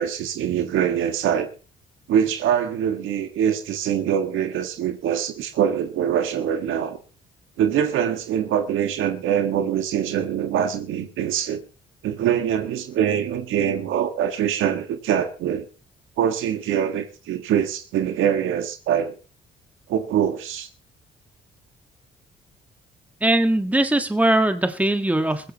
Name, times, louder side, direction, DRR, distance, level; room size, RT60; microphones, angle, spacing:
voice 1, 0.0-1.5 2.1-7.0 7.6-11.6 12.0-15.7 16.2-19.2 19.9-20.7, right 9 dB, 85° right, 1.7 m, -23 dB
voice 2, 23.2-25.5, right 1 dB, 5° right, 1.6 m, -20 dB
21.5 x 16.0 x 3.0 m
cardioid pair, 90°, 20 cm